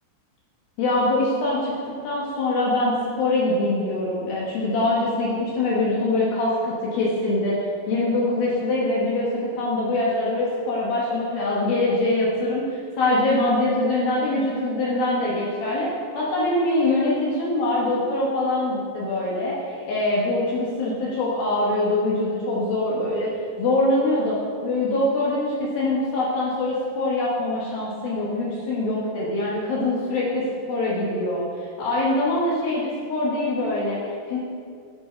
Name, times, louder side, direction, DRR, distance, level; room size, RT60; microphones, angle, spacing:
voice 1, 0.8-7.6 7.9-15.9 16.1-23.3 23.6-24.4 24.6-34.4, left 2 dB, 65° left, -6 dB, 2.6 m, -23 dB
10.5 x 7.7 x 4.4 m, 2.2 s
omnidirectional pair, 5.4 m